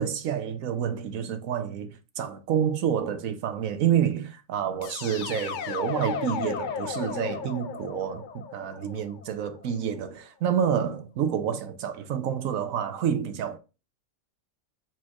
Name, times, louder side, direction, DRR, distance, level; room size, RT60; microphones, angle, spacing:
voice 1, 0.0-13.6, right 8 dB, 85° right, 1.1 m, -28 dB
sound 1, 4.8-9.7, left 7 dB, 70° left, 0.4 m, -35 dB
4.4 x 4.4 x 2.3 m
omnidirectional pair, 1.4 m